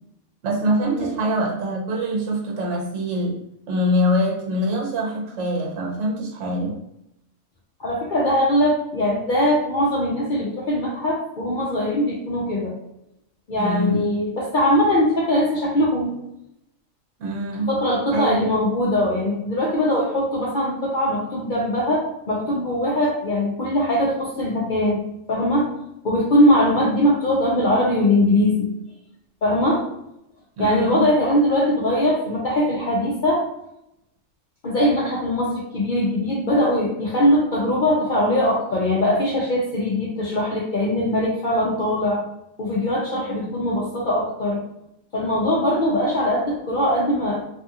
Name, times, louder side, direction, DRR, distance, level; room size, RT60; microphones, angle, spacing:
voice 1, 0.4-3.4 3.7-6.8 13.6-14.1 17.2-17.7 18.1-18.5 30.6-31.1, equal, 70° right, -1 dB, 1.0 m, -24 dB
voice 2, 7.8-12.8 13.5-16.2 17.7-25.0 25.3-25.7 26.0-28.7 29.4-29.8 30.6-33.5 34.6-42.2 42.6-44.6 45.1-47.4, left 1 dB, 55° left, -4 dB, 0.6 m, -21 dB
2.6 x 2.3 x 2.7 m, 0.82 s
omnidirectional pair, 1.4 m